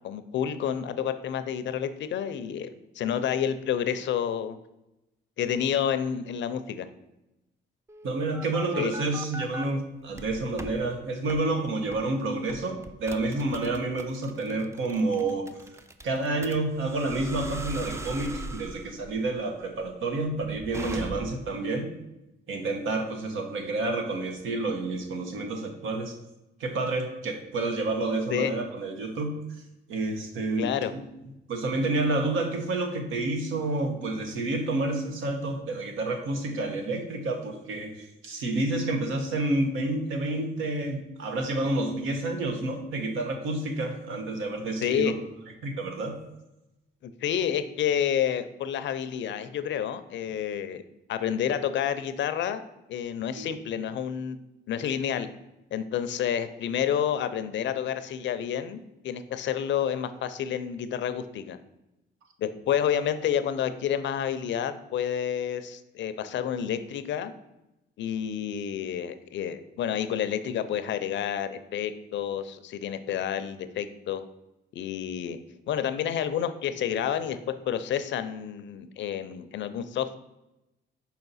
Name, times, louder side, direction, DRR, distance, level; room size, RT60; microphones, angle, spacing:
voice 1, 0.0-4.6 5.4-6.9 8.7-8.9 28.3-28.5 30.6-30.9 44.8-45.1 47.0-50.8 51.1-52.6 52.9-54.4 54.7-55.3 55.7-61.6 62.4-67.3 68.0-74.2 74.7-75.4 75.7-77.4 77.7-80.2, left 9 dB, 65° left, 11 dB, 0.5 m, -29 dB
sound 1, 7.9-9.7 10.1-10.8 11.3-11.5 11.9-12.1 12.5-21.5, right 2 dB, 15° right, 0.4 m, -39 dB
voice 2, 8.0-15.8 16.0-21.9 22.5-26.1 26.6-29.3 29.9-30.7 31.5-45.1 45.6-46.2 53.3-53.5, right 2 dB, 80° right, 4 dB, 1.1 m, -29 dB
5.6 x 4.2 x 4.1 m, 0.92 s
cardioid pair, 90°, 20 cm